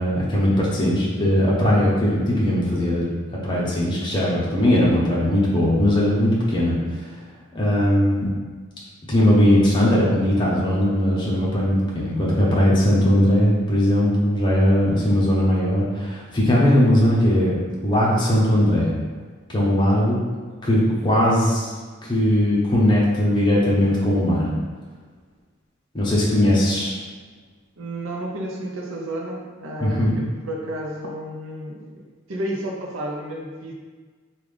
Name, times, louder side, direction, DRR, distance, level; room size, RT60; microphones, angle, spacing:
voice 1, 0.0-3.1 3.4-6.7 7.5-8.3 9.1-17.6 17.8-18.9 19.5-20.2 20.6-21.7 22.0-24.5 25.9-27.0 29.8-30.2, left 1 dB, 20° left, -6 dB, 0.7 m, -19 dB
voice 2, 27.8-33.7, right 1 dB, 70° right, -1 dB, 0.6 m, -31 dB
3.7 x 2.4 x 3.2 m, 1.4 s
head